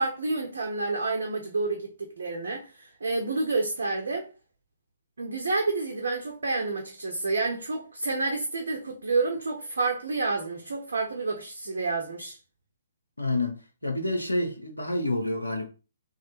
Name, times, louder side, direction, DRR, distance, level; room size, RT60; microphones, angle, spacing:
voice 1, 0.0-4.3 5.2-12.4, right 3 dB, 65° right, 0.6 m, -29 dB
voice 2, 13.2-15.7, left 1 dB, 85° left, 0.7 m, -28 dB
3.1 x 2.4 x 3.0 m
figure-of-eight pair, 130°, 0 cm